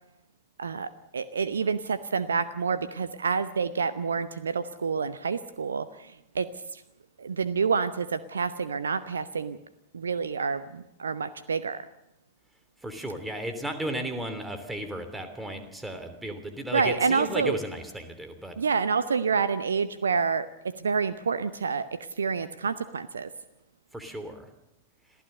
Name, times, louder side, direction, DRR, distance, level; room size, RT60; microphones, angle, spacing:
voice 1, 0.6-6.8 7.2-9.6 9.9-11.9 16.7-17.6 18.6-23.3, right 5 dB, 70° right, 14 dB, 0.7 m, -28 dB
voice 2, 12.8-18.6 23.9-24.5, right 1 dB, 5° right, 6 dB, 3.0 m, -34 dB
26.5 x 15.5 x 6.7 m, 0.88 s
figure-of-eight pair, 90°, 0 cm